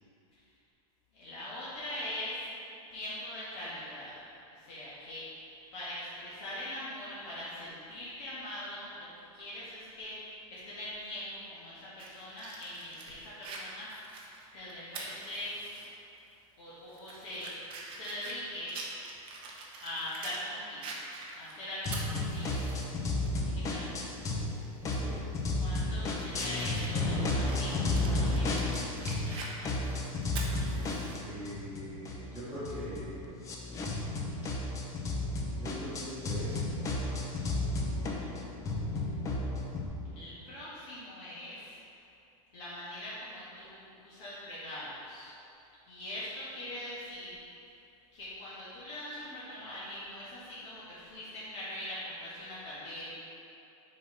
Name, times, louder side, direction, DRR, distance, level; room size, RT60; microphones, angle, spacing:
voice 1, 1.1-2.4 2.9-4.2 4.6-9.1 9.3-13.9 14.5-15.5 16.6-17.5 17.9-18.8 19.8-20.9 21.4-22.5 23.4-24.0 25.6-29.9 40.1-41.8 42.5-45.3 45.9-47.4 48.1-53.1, left 1 dB, 50° left, -10 dB, 1.6 m, -42 dB
Fire, 12.0-15.9 16.3-16.4 16.9-20.4 20.8-22.9 23.3-23.4 24.8-25.1 25.6-31.2, right 3 dB, 30° right, 0.8 m, -45 dB
sound 1, 21.9-24.5 24.8-29.4 29.6-39.9, left 2 dB, 15° left, 0.6 m, -33 dB
voice 2, 24.9-25.2 30.7-33.3 35.5-37.4, equal, 10° right, -14 dB, 1.3 m, -43 dB
6.2 x 4.4 x 5.5 m, 2.8 s
supercardioid pair, 160°, 19 cm